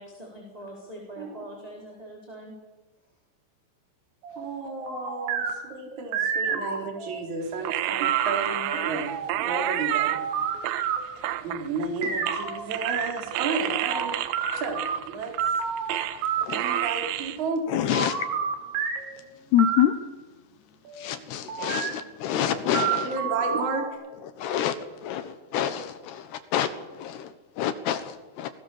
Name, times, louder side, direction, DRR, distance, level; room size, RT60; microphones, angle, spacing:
voice 1, 0.0-2.5, right 1 dB, 10° right, 3.8 m, -43 dB
voice 2, 1.2-1.5 4.4-9.1 9.4-10.2 11.4-14.1 14.5-15.3 16.5-17.6 23.0-24.0, right 4 dB, 40° right, 4.7 m, -32 dB
sound 1, 4.2-7.2 7.6-11.2 12.0-15.0 15.4-16.9 17.9-19.2 19.6-19.8 20.8-21.1 21.5-21.9 22.3-23.9, right 7 dB, 55° right, 4.7 m, -30 dB
sound 2, 7.6-10.2 10.6-12.0 12.3-16.3 16.5-17.4, right 14 dB, 75° right, 3.1 m, -30 dB
voice 3, 17.7-18.1 19.5-19.9 21.0-23.2 24.4-24.7 25.0-28.5, left 10 dB, 70° left, 2.7 m, -27 dB
27.5 x 20.0 x 7.2 m
omnidirectional pair, 5.9 m